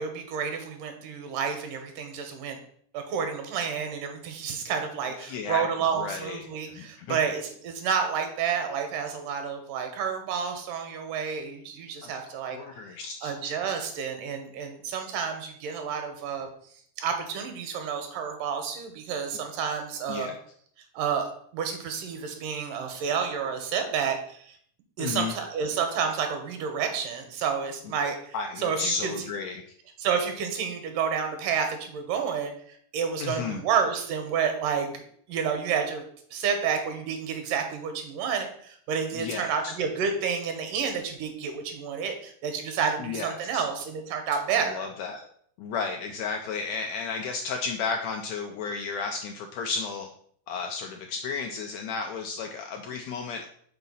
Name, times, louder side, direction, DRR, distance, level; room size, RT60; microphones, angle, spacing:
voice 1, 0.0-2.6 2.9-12.6 12.9-16.5 17.0-20.3 20.9-24.6 25.0-29.1 30.0-44.9, right 6 dB, 85° right, 5 dB, 2.6 m, -30 dB
voice 2, 5.3-5.6 6.0-6.4 6.7-7.2 12.0-12.1 12.5-13.3 20.1-20.3 25.0-25.3 28.3-29.6 33.2-33.6 39.1-39.7 43.0-43.6 44.5-45.3 45.6-50.1 50.5-53.5, left 5 dB, 80° left, 4 dB, 1.6 m, -33 dB
5.6 x 4.1 x 5.4 m, 0.62 s
omnidirectional pair, 3.7 m